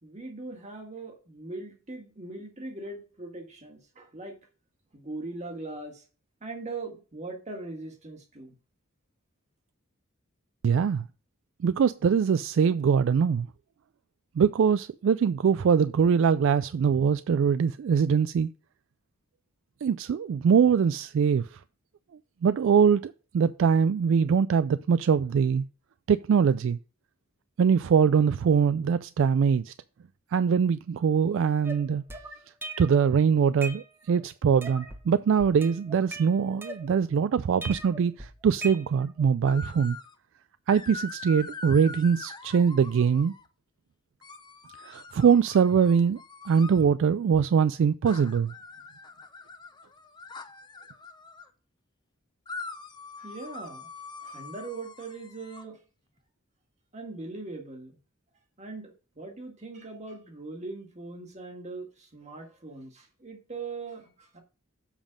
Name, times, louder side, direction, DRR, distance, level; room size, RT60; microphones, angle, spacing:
voice 1, 0.0-4.4 4.9-6.0 6.4-8.6 53.2-53.9 54.2-55.8 56.9-58.0 58.6-64.4, right 3 dB, 35° right, 1.8 m, -40 dB
voice 2, 10.6-11.1 11.6-13.5 14.4-18.5 19.8-21.6 22.4-25.6 26.1-26.8 27.6-29.7 30.3-32.0 32.8-40.0 40.7-43.3 44.8-46.2 46.5-48.5, right 6 dB, 60° right, 0.3 m, -23 dB
sound 1, 31.6-33.1 33.4-34.2 34.6-35.1 35.4-37.2 37.6-39.2, right 1 dB, 10° right, 1.0 m, -40 dB
sound 2, 39.5-40.1 40.7-43.5 44.2-46.8 48.0-51.5 52.5-55.6, left 3 dB, 20° left, 0.6 m, -43 dB
7.3 x 5.3 x 5.1 m
head